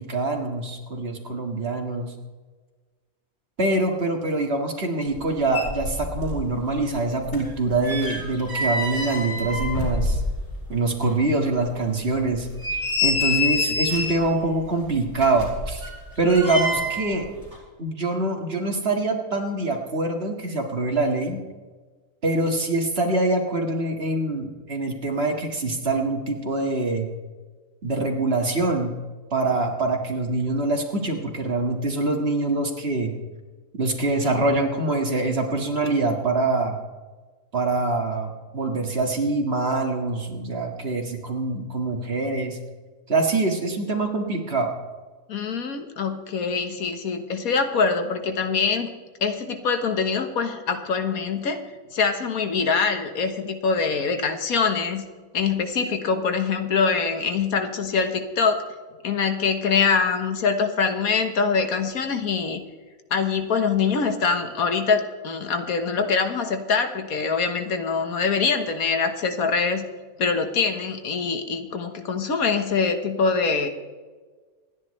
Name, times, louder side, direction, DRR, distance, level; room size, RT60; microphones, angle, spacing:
voice 1, 0.0-2.1 3.6-10.2 10.7-12.5 13.0-15.8 16.2-17.3 17.8-21.4 22.2-27.1 27.8-28.9 29.3-33.1 33.7-36.8 37.5-42.6 43.1-44.7, right 2 dB, 45° right, 3 dB, 2.1 m, -24 dB
sound 1, 5.2-5.3 5.5-6.4 6.7-10.7 11.0-11.1 11.7-11.8 12.3-14.3 15.1-17.1 17.4-17.6, left 2 dB, 30° left, 5.1 m, -27 dB
voice 2, 45.3-48.9 49.2-51.6 51.9-55.0 55.3-58.7 59.0-62.6 63.1-69.8 70.2-73.7, left 5 dB, 80° left, 7 dB, 1.7 m, -24 dB
27.5 x 10.0 x 3.2 m, 1.4 s
omnidirectional pair, 1.5 m